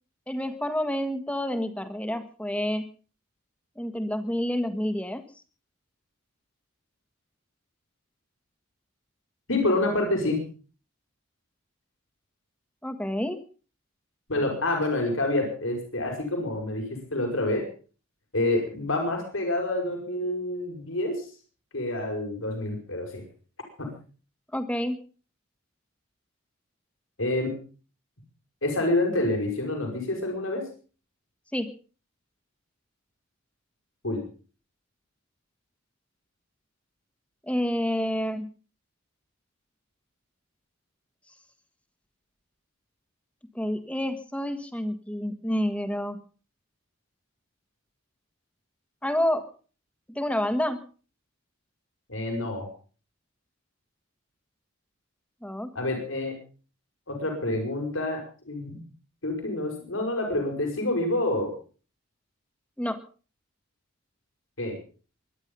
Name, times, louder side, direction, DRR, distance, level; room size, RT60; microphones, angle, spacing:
voice 1, 0.3-2.9 3.8-5.2 12.8-13.4 24.5-25.0 31.5-31.7 37.5-38.5 43.6-46.2 49.0-49.5 50.2-50.8 55.4-55.7 62.8-63.0, equal, 5° left, 9 dB, 1.6 m, -28 dB
voice 2, 9.5-10.4 14.3-17.6 18.3-21.3 21.7-23.2 23.8-23.9 27.2-27.5 28.6-30.6 34.0-34.2 52.1-52.7 55.7-56.3 57.1-58.8 59.2-61.5 64.6-64.8, left 2 dB, 80° left, 3 dB, 5.5 m, -27 dB
23.0 x 10.5 x 5.5 m, 0.40 s
head